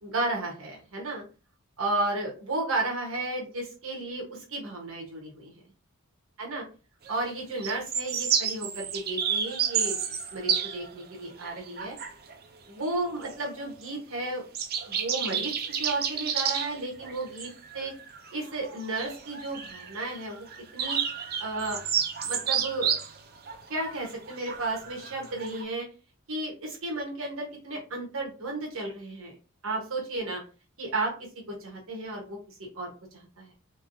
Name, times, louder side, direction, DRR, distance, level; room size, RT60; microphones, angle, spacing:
voice 1, 0.0-1.2 1.8-5.5 6.4-6.6 7.1-10.0 10.3-11.9 12.7-14.4 14.9-17.9 18.3-20.5 20.7-21.0 21.4-21.8 22.2-22.9 23.7-25.8 26.3-29.3 29.6-30.4 30.8-31.1 31.5-33.5, right 2 dB, 65° right, 0 dB, 1.4 m, -33 dB
sound 1, 7.1-7.3 7.6-11.0 11.4-12.4 12.9-13.4 13.8-13.9 14.2-14.3 14.5-25.6, right 7 dB, 45° right, 0.6 m, -31 dB
3.6 x 3.6 x 2.7 m, 0.34 s
head